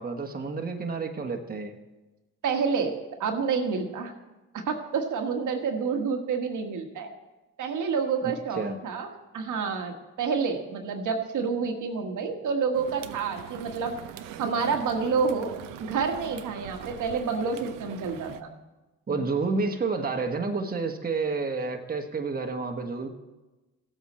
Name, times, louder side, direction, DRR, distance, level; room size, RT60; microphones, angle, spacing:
voice 1, 0.0-1.8 8.2-8.8 19.1-23.1, right 4 dB, 25° right, 3 dB, 1.4 m, -30 dB
voice 2, 2.4-2.9 3.2-4.1 4.7-7.1 7.6-13.9 14.4-18.5 19.1-19.3, right 5 dB, 65° right, 3 dB, 1.6 m, -29 dB
sound 1, 12.7-18.4, right 10 dB, 80° right, 0.8 m, -42 dB
16.0 x 8.2 x 4.3 m, 1.1 s
supercardioid pair, 65°, 33 cm